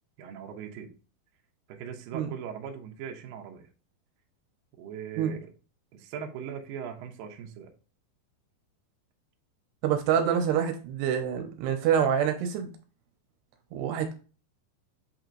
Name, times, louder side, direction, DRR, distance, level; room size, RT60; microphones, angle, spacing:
voice 1, 0.2-0.9 1.7-3.7 4.8-5.5 5.9-7.7, right 8 dB, 70° right, 3 dB, 2.4 m, -40 dB
voice 2, 9.8-12.7 13.7-14.1, right 8 dB, 85° right, 5 dB, 2.9 m, -26 dB
8.3 x 3.0 x 3.9 m, 0.36 s
omnidirectional pair, 4.8 m